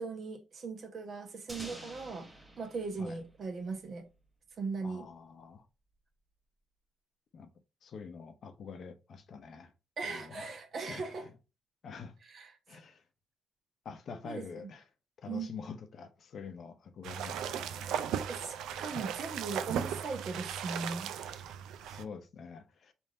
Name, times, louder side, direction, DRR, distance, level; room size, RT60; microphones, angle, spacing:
voice 1, 0.0-2.3 2.6-4.0 4.6-5.1 10.0-11.3 12.2-12.8 14.2-14.7 15.3-15.5 18.3-21.4, right 4 dB, 55° right, 1.0 m, -39 dB
sound 1, 1.5-4.3, right 1 dB, 10° right, 0.9 m, -50 dB
voice 2, 4.8-5.6 7.3-7.5 7.8-9.7 10.0-10.5 10.9-11.0 11.8-12.1 12.7-13.0 13.8-14.8 15.2-18.2 18.9-19.0 21.9-22.9, left 5 dB, 55° left, 0.7 m, -46 dB
sound 2, 17.0-22.0, right 9 dB, 85° right, 0.4 m, -37 dB
3.4 x 2.6 x 4.0 m
cardioid pair, 90°, 0 cm